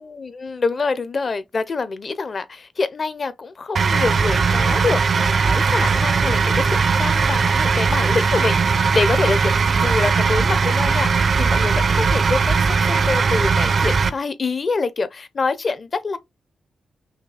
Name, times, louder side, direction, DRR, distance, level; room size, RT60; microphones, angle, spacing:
voice 1, 0.0-16.2, left 4 dB, 35° left, 0.6 m, -26 dB
sound 1, 3.8-14.1, right 5 dB, 45° right, 0.5 m, -19 dB
5.8 x 2.3 x 3.4 m
wide cardioid pair, 150°, 0 cm